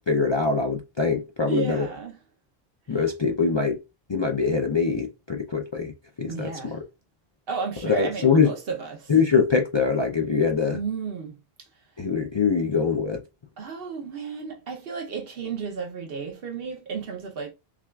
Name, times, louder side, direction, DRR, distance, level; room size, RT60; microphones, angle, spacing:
voice 1, 0.1-1.9 2.9-3.8 4.1-6.8 7.8-8.5 9.1-10.8 12.0-13.2, left 5 dB, 40° left, 0.4 m, -23 dB
voice 2, 1.5-2.2 6.3-6.8 7.5-9.1 10.7-11.4 13.6-17.5, right 5 dB, 65° right, 1.0 m, -33 dB
5.8 x 2.3 x 2.3 m
omnidirectional pair, 1.0 m